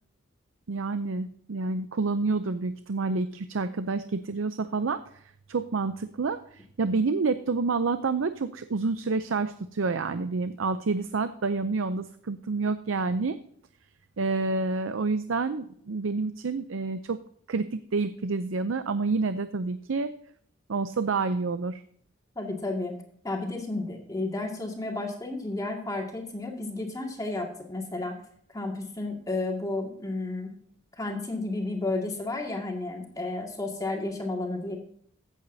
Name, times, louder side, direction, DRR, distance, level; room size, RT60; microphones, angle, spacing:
voice 1, 0.7-5.0 5.5-13.4 14.2-17.2 17.5-20.1 20.7-21.8, right 4 dB, 80° right, 11 dB, 0.6 m, -28 dB
voice 2, 22.4-22.9 23.2-28.1 28.5-30.5 31.0-34.8, left 2 dB, 20° left, 0 dB, 2.2 m, -32 dB
15.0 x 8.2 x 2.8 m, 0.62 s
head